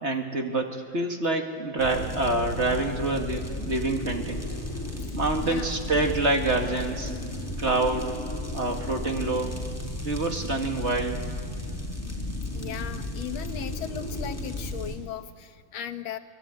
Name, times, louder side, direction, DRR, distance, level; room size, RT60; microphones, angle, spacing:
voice 1, 0.0-4.4 5.1-7.1 7.6-8.1 8.5-9.6 10.0-11.2, right 2 dB, 35° right, 3 dB, 2.0 m, -27 dB
sound 1, 1.8-15.0, left 2 dB, 5° left, 4.2 m, -34 dB
voice 2, 5.1-5.7 12.5-16.2, left 9 dB, 90° left, 9 dB, 1.9 m, -37 dB
24.5 x 21.5 x 9.0 m, 2.1 s
omnidirectional pair, 2.1 m